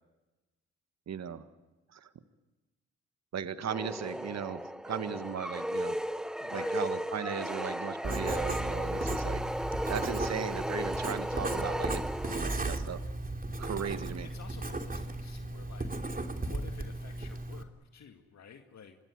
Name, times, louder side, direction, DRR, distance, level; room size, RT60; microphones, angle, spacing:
voice 1, 1.1-1.4 1.9-2.1 3.3-6.0 6.5-9.4 9.9-13.0 13.6-14.3, right 8 dB, 55° right, 12 dB, 1.7 m, -37 dB
sound 1, 3.7-12.8, equal, ahead, 1.4 m, -35 dB
voice 2, 6.4-6.8 13.6-19.0, left 7 dB, 55° left, 6 dB, 2.1 m, -52 dB
Writing, 8.0-17.6, right 2 dB, 25° right, 3.2 m, -36 dB
25.5 x 21.5 x 9.8 m, 1.1 s
hypercardioid pair, 40°, 32 cm